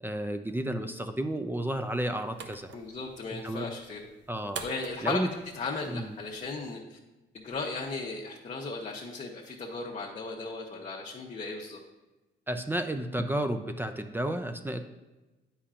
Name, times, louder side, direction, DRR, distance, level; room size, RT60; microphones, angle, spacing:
voice 1, 0.0-2.7 3.4-3.7 4.3-4.6 5.0-5.3 5.9-6.1 12.5-14.9, right 1 dB, 10° right, 7 dB, 0.4 m, -32 dB
sound 1, 1.7-6.7, right 6 dB, 65° right, 0.6 m, -47 dB
voice 2, 2.7-4.0 4.6-5.3 5.5-7.0 7.3-11.8, left 3 dB, 35° left, -3 dB, 0.9 m, -36 dB
8.4 x 5.7 x 2.5 m, 1.1 s
cardioid pair, 90°, 20 cm